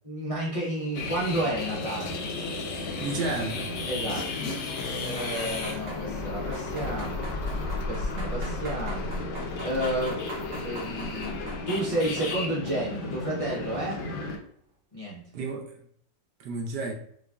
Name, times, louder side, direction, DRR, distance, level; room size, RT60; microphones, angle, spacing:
voice 1, 0.0-2.3 3.9-4.6 5.0-7.3 7.9-9.1 9.6-10.2 10.6-11.4 11.6-14.0 14.9-15.2, right 1 dB, 50° left, 0.4 m, -31 dB
sound 1, 0.9-14.4, left 3 dB, 85° left, 1.4 m, -34 dB
voice 2, 3.0-3.8 15.3-15.8 16.4-16.9, right 3 dB, 70° right, 1.2 m, -32 dB
sound 2, 3.5-11.6, left 2 dB, 70° left, 1.2 m, -37 dB
sound 3, 5.2-6.0 6.5-12.4 12.7-13.1 13.5-13.6, right 2 dB, 50° right, 1.3 m, -42 dB
4.8 x 2.5 x 2.3 m
omnidirectional pair, 1.9 m